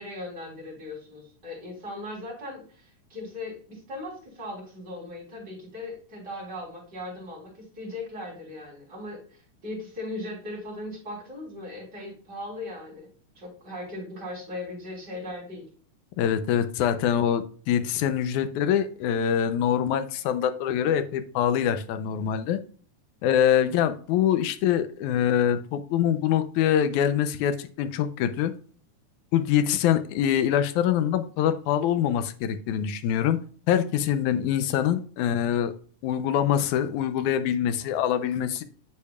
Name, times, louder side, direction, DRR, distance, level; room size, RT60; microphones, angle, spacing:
voice 1, 0.0-13.1 13.4-15.6, left 1 dB, 30° right, -3 dB, 3.9 m, -38 dB
voice 2, 16.2-22.6 23.2-28.5 29.3-33.4 33.7-35.7 36.0-38.6, left 9 dB, 80° left, 10 dB, 2.0 m, -24 dB
8.3 x 6.6 x 2.3 m, 0.43 s
omnidirectional pair, 3.7 m